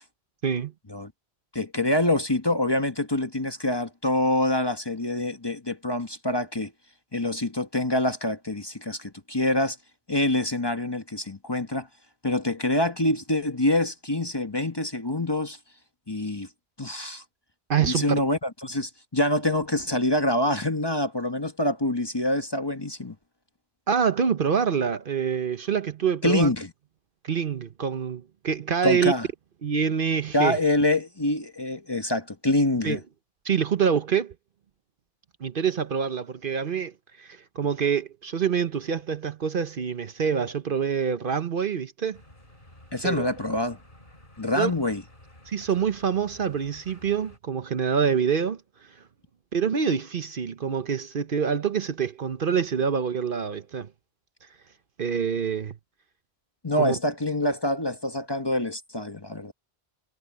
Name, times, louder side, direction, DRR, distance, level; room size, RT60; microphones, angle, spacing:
voice 1, 1.5-6.7 7.1-9.8 10.1-11.9 12.2-15.6 16.1-16.5 16.8-17.2 17.8-23.1 26.2-26.7 28.8-29.2 30.3-33.0 42.9-43.8 44.4-45.0 56.6-59.5, left 1 dB, 25° left, 1.1 m, -25 dB
voice 2, 17.7-18.2 23.9-26.5 27.2-29.1 29.6-30.6 32.8-33.0 33.4-34.3 35.4-42.2 43.0-43.3 44.5-44.7 45.5-48.9 49.5-53.9 55.0-55.8 56.8-57.0, right 7 dB, 55° right, 1.0 m, -26 dB
sound 1, 42.1-47.4, left 1 dB, 50° left, 6.1 m, -52 dB
omnidirectional pair, 1.1 m